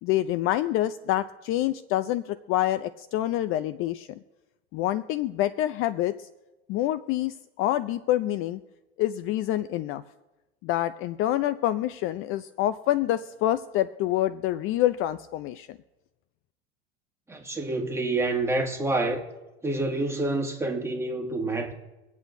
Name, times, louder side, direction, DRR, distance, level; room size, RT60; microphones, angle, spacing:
voice 1, 0.0-4.2 4.7-6.3 6.7-8.6 9.0-10.0 10.6-15.8, left 14 dB, 45° left, 0.5 m, -27 dB
voice 2, 17.3-19.2 19.6-21.7, right 2 dB, 10° right, 2.0 m, -27 dB
25.0 x 8.4 x 2.7 m
hypercardioid pair, 100°, 31 cm